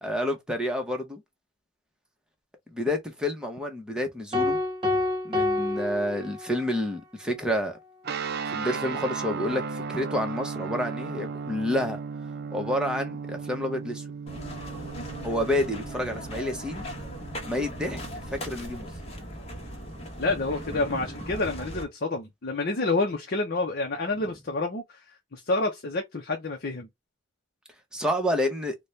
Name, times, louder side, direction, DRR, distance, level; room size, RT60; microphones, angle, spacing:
voice 1, 0.0-1.2 2.7-4.6 5.2-7.8 8.5-12.0 12.5-14.0 15.2-16.9 17.4-18.0 18.3-18.9 27.9-28.7, left 1 dB, 5° right, 0.9 m, -29 dB
sound 1, 4.3-6.8, left 2 dB, 25° right, 1.1 m, -27 dB
sound 2, 8.0-18.4, right 5 dB, 50° right, 0.5 m, -36 dB
sound 3, 14.3-21.8, equal, 30° left, 1.1 m, -38 dB
voice 2, 15.0-15.3 20.2-26.9, left 2 dB, 50° left, 0.7 m, -29 dB
4.0 x 2.2 x 3.1 m
head